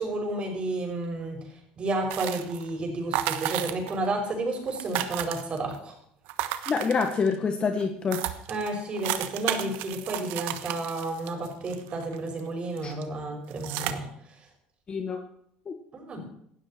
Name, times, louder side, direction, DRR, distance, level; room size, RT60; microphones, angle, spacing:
voice 1, 0.0-1.4 1.8-5.9 8.5-14.1 15.9-16.3, right 2 dB, 35° right, 2 dB, 5.9 m, -31 dB
sound 1, 2.1-2.7 3.1-4.1 4.3-4.4 4.6-5.8 6.3-7.4 7.8-7.9 8.1-12.4 12.8-13.0 13.5-13.9, right 13 dB, 75° right, 1.3 m, -33 dB
voice 2, 6.7-8.2 12.8-12.9 14.9-15.2 15.7-15.8, left 5 dB, 30° left, 5 dB, 1.6 m, -26 dB
18.0 x 13.0 x 4.6 m, 0.67 s
cardioid pair, 115°, 3 cm